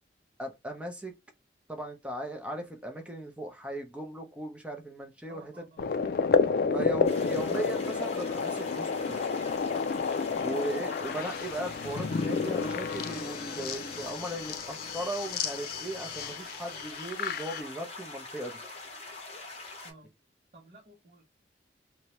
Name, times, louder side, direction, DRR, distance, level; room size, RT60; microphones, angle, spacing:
voice 1, 0.4-1.1 1.7-5.6 6.7-9.2 10.4-18.6, right 1 dB, 5° right, 0.6 m, -37 dB
voice 2, 5.3-5.9 6.6-6.8 10.3-10.6 19.8-20.1 20.5-21.4, right 3 dB, 45° right, 0.7 m, -53 dB
sound 1, 5.8-17.6, left 5 dB, 55° left, 0.3 m, -31 dB
sound 2, 7.0-19.9, left 3 dB, 35° left, 0.8 m, -44 dB
2.6 x 2.2 x 2.9 m
head